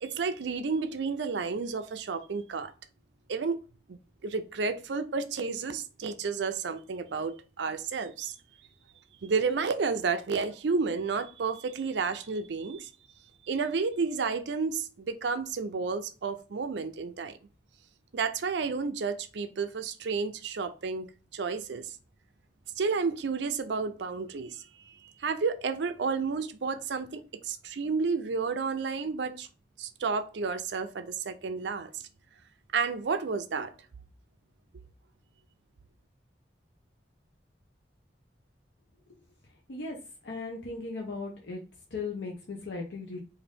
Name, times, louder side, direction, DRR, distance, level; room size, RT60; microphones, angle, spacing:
voice 1, 0.0-2.7 3.3-3.6 3.9-8.3 9.2-12.9 13.4-17.4 18.1-22.0 22.8-29.5 29.8-32.0 32.7-33.7, right 4 dB, 75° right, 0.5 m, -31 dB
voice 2, 40.2-41.6 41.9-43.2, left 3 dB, 75° left, 0.7 m, -37 dB
3.8 x 2.6 x 3.4 m
head